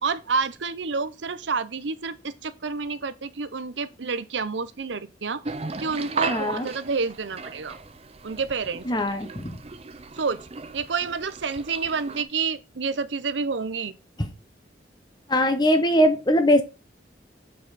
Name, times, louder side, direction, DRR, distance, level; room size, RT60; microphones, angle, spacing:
voice 1, 0.0-5.4 5.8-7.8 8.2-8.8 10.1-10.4 10.7-13.9, right 4 dB, 80° right, 0.7 m, -29 dB
sound 1, 5.4-12.2, right 4 dB, 35° right, 0.6 m, -36 dB
voice 2, 6.3-6.7 8.9-9.6 14.2-14.3 15.3-16.6, equal, 25° left, 1.0 m, -21 dB
7.6 x 5.5 x 4.1 m
head